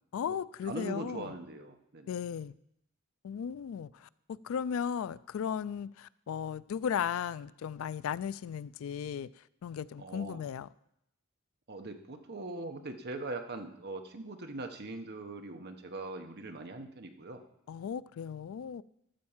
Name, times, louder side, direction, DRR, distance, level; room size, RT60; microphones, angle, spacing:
voice 1, 0.1-1.3 2.1-2.5 3.2-4.1 4.4-9.3 9.6-10.7 17.7-18.8, left 8 dB, 70° left, 18 dB, 0.3 m, -36 dB
voice 2, 0.6-2.1 10.0-10.5 11.7-17.4, right 2 dB, 50° right, 5 dB, 1.0 m, -41 dB
13.0 x 4.4 x 7.2 m, 0.78 s
head